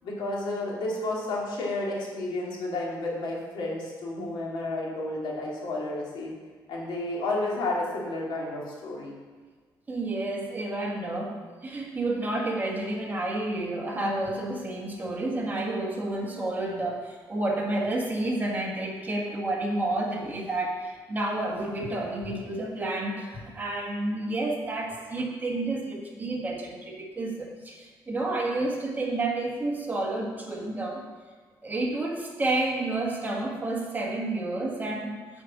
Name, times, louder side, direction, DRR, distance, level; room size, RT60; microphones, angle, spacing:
voice 1, 0.0-6.3 6.7-9.1, left 2 dB, 85° left, -3 dB, 2.5 m, -31 dB
voice 2, 9.9-31.0 31.6-35.4, right 2 dB, 20° right, -1 dB, 1.6 m, -30 dB
7.9 x 5.2 x 7.3 m, 1.4 s
cardioid pair, 120°, 8 cm